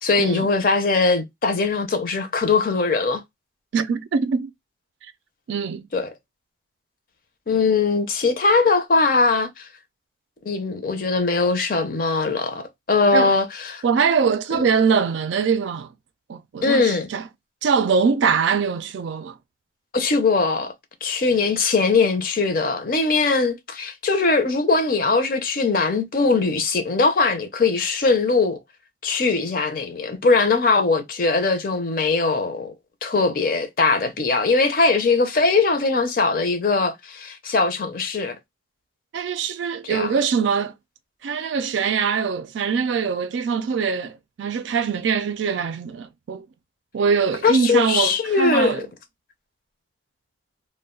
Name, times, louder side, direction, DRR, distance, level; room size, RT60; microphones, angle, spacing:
voice 1, 0.0-3.2 5.9-6.1 7.5-9.7 10.4-13.8 14.5-14.6 16.6-17.1 19.9-20.7 21.0-28.6 29.0-32.7 33.0-38.4 39.9-40.1 47.4-48.8, left 4 dB, 50° left, 0.5 m, -21 dB
voice 2, 3.7-4.5 5.5-5.9 13.1-13.3 13.8-15.9 16.3-17.3 17.6-19.4 39.1-40.7 41.2-46.5 46.9-48.8, right 6 dB, 85° right, 0.3 m, -23 dB
2.3 x 2.1 x 3.6 m
head